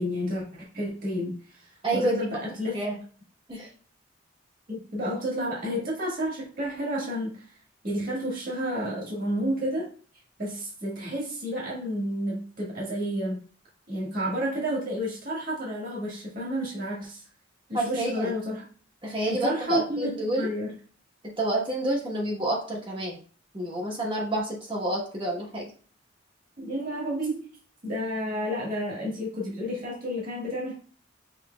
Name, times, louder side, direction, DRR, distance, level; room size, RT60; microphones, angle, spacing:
voice 1, 0.0-2.8 4.7-7.4 7.8-9.9 10.4-13.4 13.9-17.2 17.7-18.6 19.3-20.7 26.6-27.4 27.8-30.7, equal, 45° right, -4 dB, 1.6 m, -31 dB
voice 2, 1.8-2.2 2.7-3.0 3.5-3.7 17.7-18.3 19.0-20.5 21.4-23.2 23.5-25.7, right 1 dB, 25° right, -2 dB, 1.0 m, -28 dB
6.0 x 3.2 x 2.2 m, 0.42 s
head